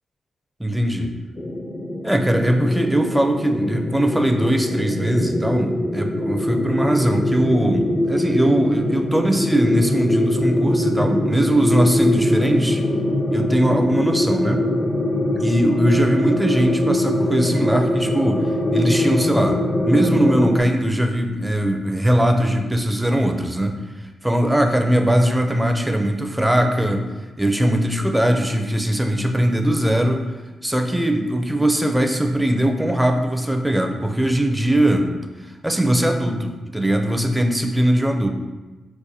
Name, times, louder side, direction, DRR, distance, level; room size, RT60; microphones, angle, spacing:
voice 1, 0.6-1.1 2.0-12.8 13.3-14.7 15.3-19.6 19.9-27.1 27.4-30.2 30.6-35.1 35.6-38.3, right 1 dB, 10° right, 4 dB, 0.5 m, -20 dB
sound 1, 1.4-20.6, left 1 dB, 45° left, 0.4 m, -22 dB
4.7 x 2.2 x 2.7 m, 1.2 s
supercardioid pair, 45°, 0 cm